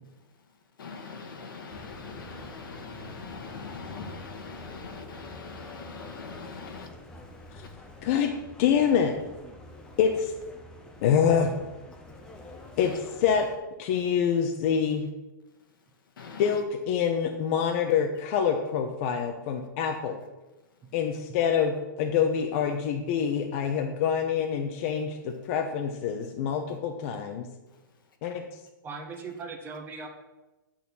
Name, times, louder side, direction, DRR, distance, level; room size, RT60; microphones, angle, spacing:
voice 1, 0.0-8.0 12.4-13.0 15.6-16.6 20.8-20.9 27.7-28.2, left 5 dB, 85° left, 1.8 m, -43 dB
sound 1, 1.7-13.6, left 1 dB, 5° left, 0.9 m, -47 dB
voice 2, 8.6-9.1 10.0-10.3 11.0-11.5 12.8-12.9 13.2-13.5 13.8-15.1 16.4-20.2 20.9-27.5 28.2-28.4, left 7 dB, 40° left, 0.8 m, -26 dB
voice 3, 28.8-30.1, right 4 dB, 20° right, 1.2 m, -38 dB
8.7 x 4.3 x 7.0 m
hypercardioid pair, 150°, 11 cm